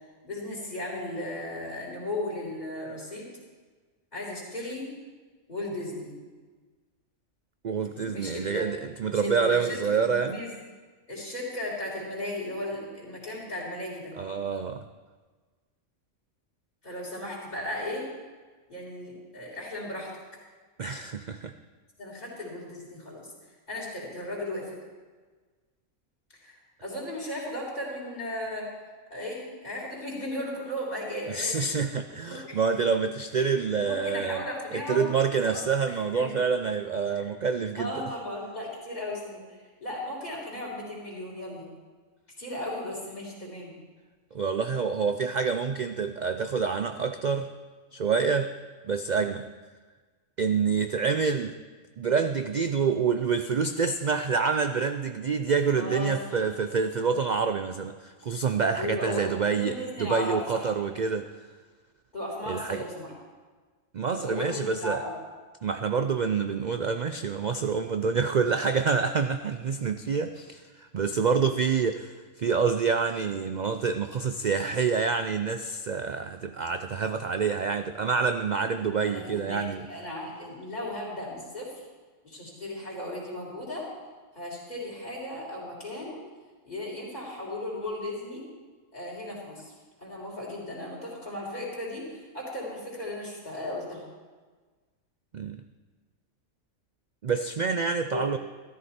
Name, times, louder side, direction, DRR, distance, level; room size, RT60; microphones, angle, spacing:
voice 1, 0.2-3.3 4.1-4.9 5.5-6.2 7.9-8.7 9.1-10.5 11.1-14.1 16.8-18.1 18.7-20.1 22.0-23.3 23.7-24.7 26.4-28.7 29.1-31.7 32.3-32.6 33.4-33.5 33.8-35.0 35.4-35.6 35.9-36.3 37.1-37.2 37.8-41.7 42.4-43.7 55.7-56.4 58.8-60.7 62.1-63.1 64.1-65.1 79.1-81.8 82.2-83.9 84.3-86.2 86.6-88.4 88.9-89.7 90.0-94.0 98.1-98.2, left 1 dB, 30° left, -6 dB, 3.8 m, -36 dB
voice 2, 7.6-10.4 14.2-14.9 20.8-21.5 31.3-34.4 34.7-38.0 44.3-47.5 47.9-48.5 48.8-49.5 50.4-51.5 52.0-61.3 62.5-62.8 63.9-65.0 65.6-79.9 95.3-95.6 97.2-98.4, right 5 dB, 90° right, 8 dB, 0.4 m, -27 dB
14.0 x 13.0 x 4.3 m, 1.4 s
omnidirectional pair, 1.4 m